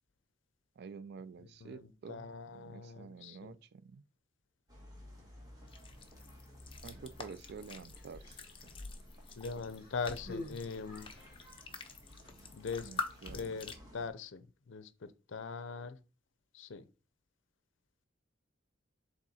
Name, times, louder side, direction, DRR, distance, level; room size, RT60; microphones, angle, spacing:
voice 1, 0.8-4.0 6.8-8.4 12.8-13.6, right 5 dB, 55° right, 0.4 m, -49 dB
voice 2, 1.4-3.5 9.4-11.1 12.5-12.9 13.3-16.0 16.5-16.8, left 5 dB, 75° left, 0.6 m, -42 dB
sound 1, 4.7-14.1, equal, 20° right, 2.0 m, -55 dB
sound 2, 5.7-13.7, left 3 dB, 30° left, 0.9 m, -47 dB
Human voice, 7.8-8.7 9.6-11.6 12.5-12.6, left 2 dB, 50° left, 1.2 m, -49 dB
7.3 x 3.6 x 4.2 m
head